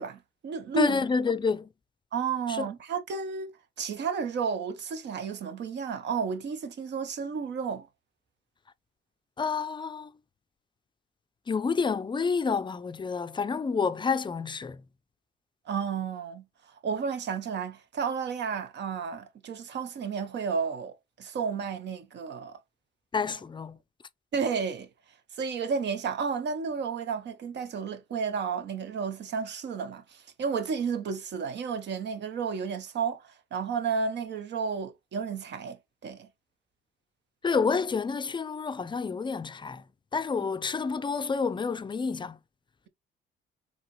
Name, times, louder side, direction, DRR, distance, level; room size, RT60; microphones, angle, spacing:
voice 1, 0.0-1.1 2.1-7.9 15.7-16.5 16.8-22.6 24.3-24.9 25.3-36.3 40.4-40.5, right 6 dB, 60° right, 0.8 m, -32 dB
voice 2, 0.8-1.7 2.5-2.7 9.4-10.1 11.5-14.8 23.1-23.8 37.4-39.8 40.1-42.4, left 5 dB, 25° left, 0.4 m, -29 dB
4.8 x 2.9 x 3.0 m
cardioid pair, 90°, 20 cm